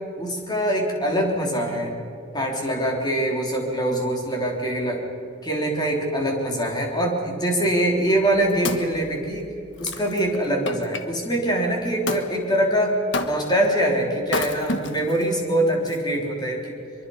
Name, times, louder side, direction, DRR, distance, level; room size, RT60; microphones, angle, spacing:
voice 1, 0.2-1.9 2.3-5.0 5.4-9.5 9.8-12.9 13.2-16.7, right 1 dB, 20° left, 0 dB, 3.4 m, -23 dB
Wood, 8.1-11.0 12.1-12.3 13.1-13.7 14.2-15.2 15.9-16.0, left 3 dB, 65° left, 1.3 m, -30 dB
23.5 x 23.5 x 5.5 m, 2.5 s
head